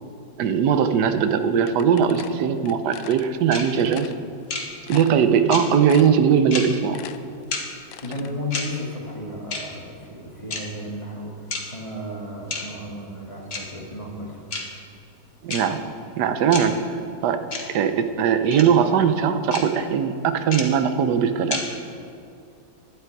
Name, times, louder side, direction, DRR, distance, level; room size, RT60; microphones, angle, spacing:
voice 1, 0.4-4.1 4.9-7.0 15.4-15.8 16.2-17.4 17.7-21.6, right 7 dB, 70° right, 9 dB, 1.2 m, -20 dB
sound 1, 1.7-3.3 3.8-4.2 4.6-4.7 4.9-5.5 5.9-6.3 6.6-8.3, left 11 dB, 80° left, 1.3 m, -39 dB
sound 2, 3.5-3.6 4.5-4.6 5.5-5.6 6.5-6.6 7.5-7.6 8.5-8.6 9.5-9.6 10.5-10.6 11.5-11.6 12.5-12.6 13.5-13.6 14.5-14.6 15.5-15.6 16.5-16.6 17.5-17.6 18.5-18.6 19.5-19.6 20.5-20.6 21.5-21.6, left 4 dB, 35° left, 1.4 m, -28 dB
voice 2, 8.0-14.4, left 1 dB, 20° left, -3 dB, 1.7 m, -34 dB
12.0 x 10.5 x 4.6 m, 2.7 s
omnidirectional pair, 2.0 m